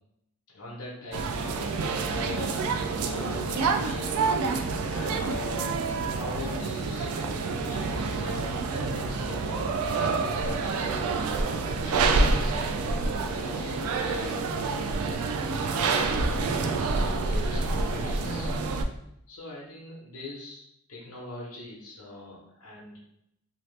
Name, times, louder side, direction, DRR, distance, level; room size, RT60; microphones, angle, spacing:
voice 1, 0.5-1.7 2.0-2.7 3.0-4.2 4.9-5.8 6.1-9.7 10.2-14.4 15.1-16.3 17.0-18.5 19.3-23.0, left 2 dB, 75° left, -6 dB, 0.8 m, -42 dB
sound 1, 1.1-18.8, right 4 dB, 75° right, 0.3 m, -28 dB
sound 2, 3.0-3.5 5.1-5.2 5.5-6.0 7.3-7.5 8.6-9.4 10.0-11.1 11.7-11.8 12.0-12.9 14.5-15.1 15.6-15.7 16.4-16.9 18.2-18.9, left 1 dB, 35° left, 0.5 m, -40 dB
2.8 x 2.4 x 3.2 m, 0.77 s
head